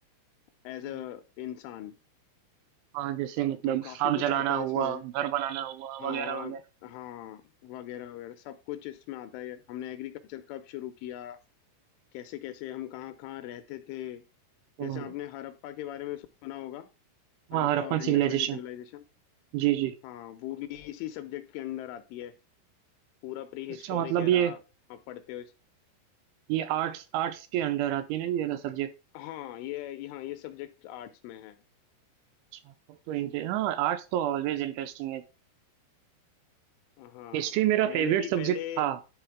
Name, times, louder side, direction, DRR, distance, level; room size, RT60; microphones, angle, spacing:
voice 1, 0.6-2.0 3.6-5.0 6.0-6.6 6.8-11.4 12.1-14.2 14.8-16.9 17.5-19.0 20.0-22.3 23.2-24.6 24.9-25.5 29.1-31.6 37.0-37.5 37.8-38.9, left 13 dB, 80° left, 9 dB, 2.9 m, -40 dB
voice 2, 2.9-6.6 14.8-15.1 17.5-18.6 19.5-19.9 23.8-24.5 26.5-28.9 33.1-35.2 37.3-39.0, right 12 dB, 85° right, 10 dB, 2.8 m, -28 dB
11.5 x 3.9 x 4.5 m, 0.31 s
omnidirectional pair, 5.9 m